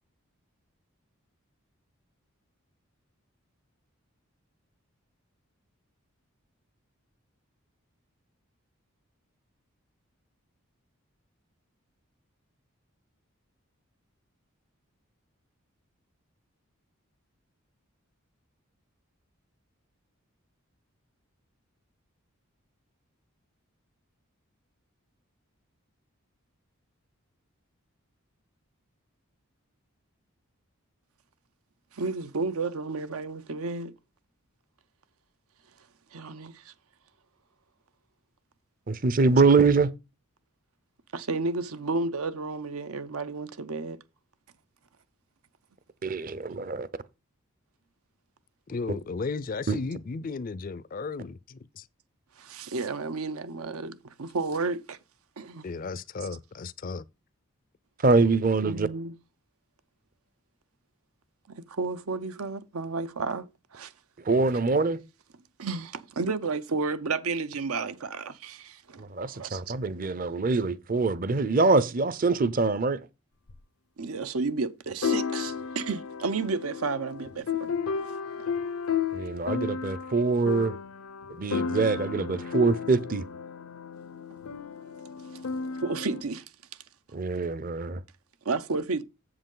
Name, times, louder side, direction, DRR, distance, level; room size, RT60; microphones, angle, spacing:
voice 1, 31.9-33.9 36.1-36.7 41.1-44.0 52.4-55.0 55.4-55.7 58.6-59.1 61.5-63.9 65.6-69.8 74.0-77.7 85.8-86.4 88.4-89.0, right 3 dB, 85° right, 0.7 m, -32 dB
voice 2, 38.9-39.9 46.0-46.9 49.7-49.8 58.0-58.9 64.3-65.0 69.0-73.0 79.1-80.8 81.3-83.3 87.1-88.0, right 3 dB, 40° right, 0.6 m, -24 dB
voice 3, 48.7-51.9 55.6-57.0, left 4 dB, 40° left, 0.4 m, -35 dB
sound 1, 73.5-73.6 75.0-86.2, left 6 dB, 85° left, 0.7 m, -33 dB
7.8 x 7.4 x 3.8 m
head